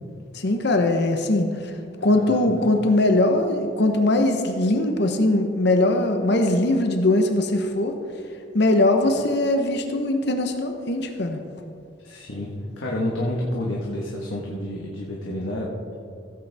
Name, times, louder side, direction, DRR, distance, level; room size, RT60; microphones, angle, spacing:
voice 1, 0.3-1.5 2.0-7.9 8.5-11.4, left 2 dB, 60° left, 5 dB, 0.9 m, -21 dB
voice 2, 2.0-2.5 12.0-12.5 12.8-15.9, left 1 dB, 80° left, -3 dB, 1.4 m, -29 dB
16.0 x 8.4 x 3.5 m, 2.4 s
head